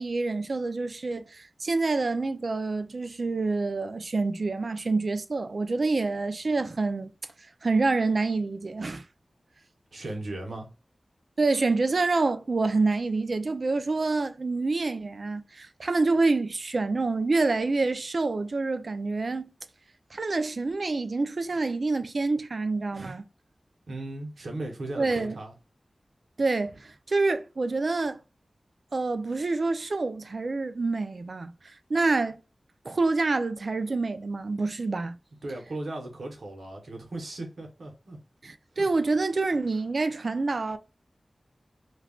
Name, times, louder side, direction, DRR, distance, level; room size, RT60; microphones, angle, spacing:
voice 1, 0.0-7.1 7.6-9.0 11.4-19.5 20.1-23.3 25.0-25.4 26.4-28.2 28.9-32.4 32.8-35.2 38.4-40.8, right 3 dB, 60° right, 0.3 m, -27 dB
voice 2, 9.9-10.7 23.9-25.5 35.4-38.2, right 2 dB, 85° right, 0.8 m, -37 dB
2.3 x 2.3 x 3.5 m
wide cardioid pair, 95°, 0 cm